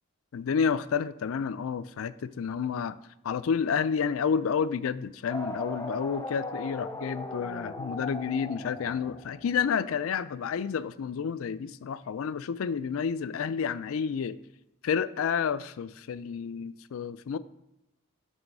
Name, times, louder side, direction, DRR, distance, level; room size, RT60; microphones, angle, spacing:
voice 1, 0.3-2.9 3.2-14.4 14.8-17.4, left 6 dB, 80° left, 15 dB, 0.4 m, -30 dB
sound 1, 5.3-9.8, left 2 dB, 15° left, 0.4 m, -38 dB
9.1 x 3.2 x 6.0 m, 0.91 s
head